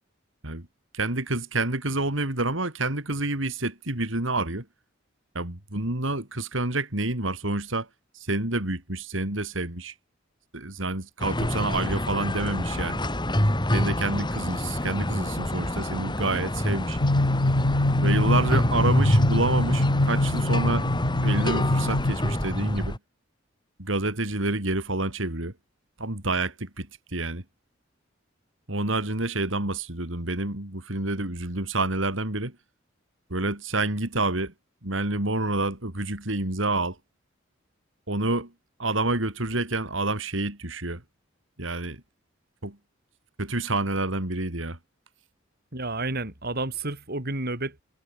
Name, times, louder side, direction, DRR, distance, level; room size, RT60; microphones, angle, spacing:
voice 1, 0.9-4.7 5.3-7.9 8.1-10.0 10.5-13.0 13.7-17.0 18.0-20.9 21.2-23.0 23.8-25.5 26.0-27.4 28.7-32.5 33.3-34.5 34.8-37.0 38.1-38.5 38.8-41.0 41.6-42.0 42.6-42.8 43.4-44.8, right 2 dB, 70° right, 4.1 m, -28 dB
sound 1, 11.2-23.0, left 1 dB, 25° left, 5.0 m, -27 dB
sound 2, 16.9-22.1, left 1 dB, 85° left, 1.6 m, -24 dB
voice 2, 45.7-47.8, right 2 dB, 50° right, 5.9 m, -30 dB
head